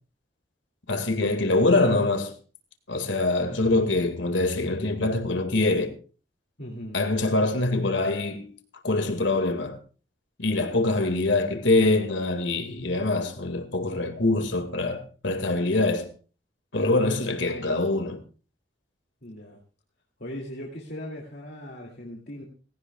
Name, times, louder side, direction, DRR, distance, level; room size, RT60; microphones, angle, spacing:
voice 1, 0.9-2.3 2.9-5.9 6.9-8.5 8.8-9.8 10.4-16.1 16.7-18.2, left 2 dB, 80° left, 2.0 m, -24 dB
voice 2, 6.6-7.0 19.2-19.6 20.2-22.4, left 1 dB, 55° left, 2.5 m, -39 dB
18.5 x 16.5 x 2.3 m
head